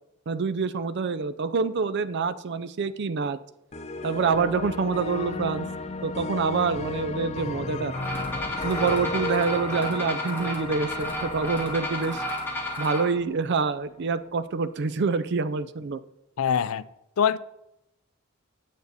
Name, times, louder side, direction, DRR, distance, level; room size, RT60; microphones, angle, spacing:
voice 1, 0.3-3.4 4.0-5.7 6.0-7.9 8.6-12.2 12.8-16.0, right 4 dB, 50° right, 0.4 m, -26 dB
sound 1, 3.7-13.8, left 2 dB, 30° left, 0.6 m, -34 dB
sound 2, 7.9-13.1, left 1 dB, 10° left, 1.8 m, -32 dB
voice 2, 16.4-16.9 17.2-17.4, left 7 dB, 75° left, 0.4 m, -23 dB
9.4 x 8.0 x 4.1 m
head